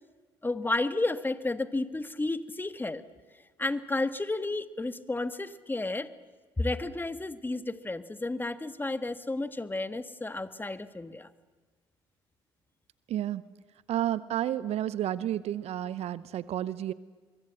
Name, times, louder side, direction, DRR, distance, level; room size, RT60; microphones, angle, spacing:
voice 1, 0.4-3.0 3.6-6.1 6.6-11.3, left 2 dB, 15° left, 12 dB, 1.4 m, -32 dB
voice 2, 13.1-13.4 13.9-16.9, right 12 dB, 55° right, 18 dB, 0.8 m, -31 dB
24.5 x 23.0 x 7.8 m, 1.4 s
figure-of-eight pair, 50°, 13 cm